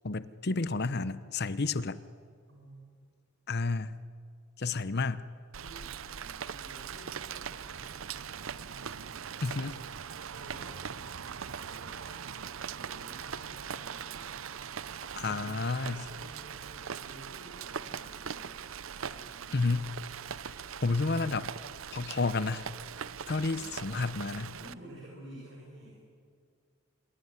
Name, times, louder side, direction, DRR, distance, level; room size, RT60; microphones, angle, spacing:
voice 1, 0.0-2.0 3.5-4.0 4.6-5.3 9.4-9.8 15.2-16.0 19.5-19.9 20.8-21.5 21.9-22.7 23.3-24.5, left 3 dB, 50° left, 15 dB, 0.8 m, -31 dB
voice 2, 2.5-3.0 5.5-9.7 10.2-12.2 12.6-14.3 15.2-18.6 18.9-19.8 23.5-23.8 24.5-26.1, right 1 dB, 60° right, -4 dB, 6.6 m, -52 dB
Rain, 5.5-24.7, right 7 dB, 80° right, 0.7 m, -41 dB
27.0 x 22.0 x 9.8 m, 2.1 s
head